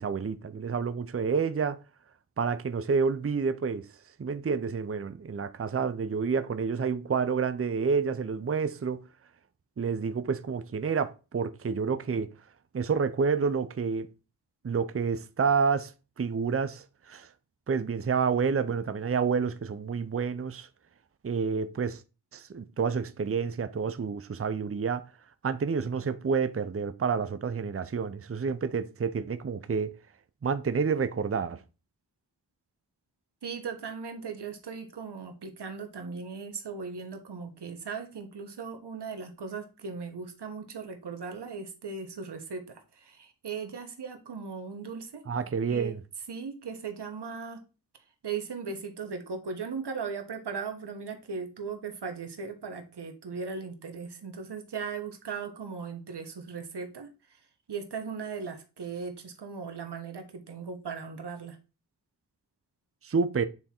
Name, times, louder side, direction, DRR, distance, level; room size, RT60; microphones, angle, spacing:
voice 1, 0.0-1.8 2.4-3.9 4.2-9.0 9.8-12.3 12.7-14.1 14.6-15.9 16.2-17.3 17.7-20.7 21.2-22.0 22.3-25.0 25.4-29.9 30.4-31.6 45.3-46.0 63.0-63.5, right 5 dB, 35° right, 0.6 m, -29 dB
voice 2, 33.4-45.2 45.7-45.9 46.3-47.6 48.2-57.4 57.7-61.6, right 5 dB, 70° right, 1.2 m, -38 dB
7.7 x 3.6 x 4.3 m
cardioid pair, 50°, 42 cm